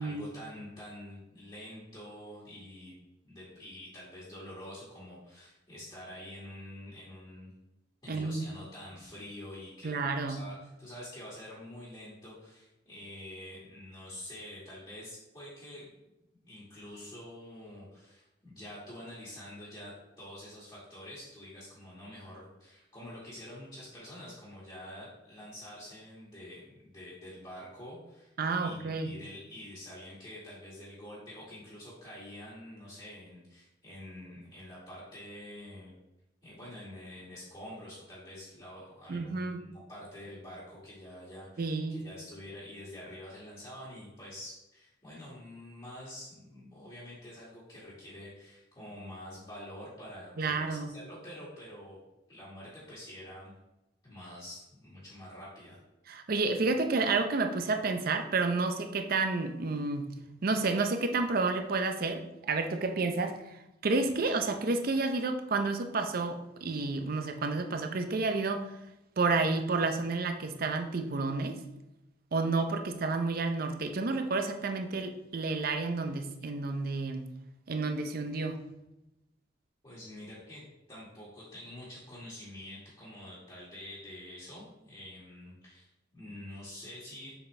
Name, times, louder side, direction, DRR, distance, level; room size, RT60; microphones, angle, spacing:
voice 1, 0.0-2.9 3.2-7.5 8.0-10.0 10.3-15.9 16.4-28.3 28.6-35.9 36.4-52.0 52.3-53.5 54.0-55.8 79.8-87.3, left 1 dB, 25° left, -7 dB, 1.8 m, -47 dB
voice 2, 8.1-8.5 9.8-10.4 28.4-29.1 39.1-39.6 41.6-42.0 50.4-50.9 56.1-60.1 60.4-63.4 63.8-68.6 69.2-71.6 72.3-77.2 77.7-78.6, right 3 dB, 55° right, 6 dB, 0.6 m, -30 dB
6.6 x 4.3 x 3.3 m, 0.93 s
head